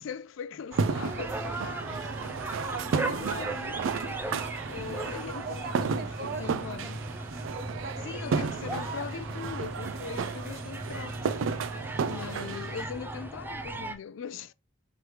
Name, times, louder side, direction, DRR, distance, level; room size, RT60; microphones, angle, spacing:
voice 1, 0.0-1.4 2.2-2.4 2.9-3.8 4.6-7.1 8.0-11.2 12.0-14.5, left 6 dB, 75° left, 0.4 m, -40 dB
sound 1, 0.7-14.0, right 2 dB, 10° right, 0.4 m, -37 dB
sound 2, 0.7-12.8, right 5 dB, 80° right, 0.4 m, -33 dB
voice 2, 1.6-3.0 5.4-7.0 7.5-8.5 9.7-9.9, right 3 dB, 50° right, 0.7 m, -43 dB
3.2 x 3.1 x 4.6 m
head